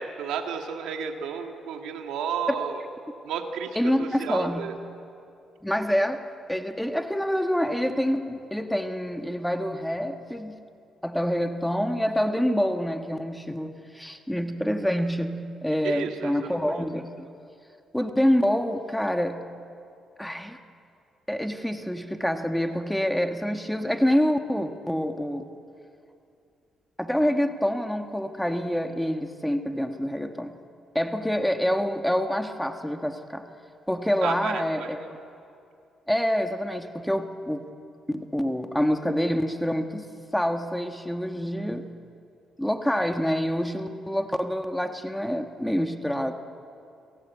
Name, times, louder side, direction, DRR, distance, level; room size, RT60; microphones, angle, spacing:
voice 1, 0.0-2.8 3.2-4.7 15.8-16.8 34.2-34.9, right 7 dB, 90° right, 4 dB, 1.9 m, -32 dB
voice 2, 3.7-4.7 5.6-10.6 11.0-17.3 17.9-19.4 20.2-20.6 21.3-25.5 27.0-30.5 30.9-33.4 33.9-35.0 36.1-37.6 38.1-40.1 40.3-41.8 42.6-46.3, equal, 5° left, 6 dB, 1.5 m, -26 dB
28.5 x 17.5 x 8.4 m, 2.5 s
cardioid pair, 90°, 0 cm